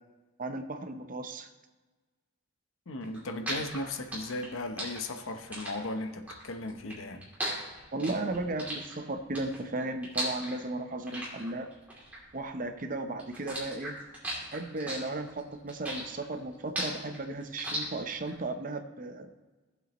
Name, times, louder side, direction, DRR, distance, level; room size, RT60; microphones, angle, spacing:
voice 1, 0.4-1.5 7.9-11.7 12.3-14.0 14.5-19.3, right 2 dB, 40° right, 7 dB, 0.7 m, -35 dB
voice 2, 2.9-7.2, left 2 dB, 75° left, 6 dB, 0.8 m, -36 dB
sound 1, 3.0-12.9 13.2-18.3, right 1 dB, 5° right, 2.7 m, -37 dB
16.5 x 7.5 x 3.0 m, 1.2 s
head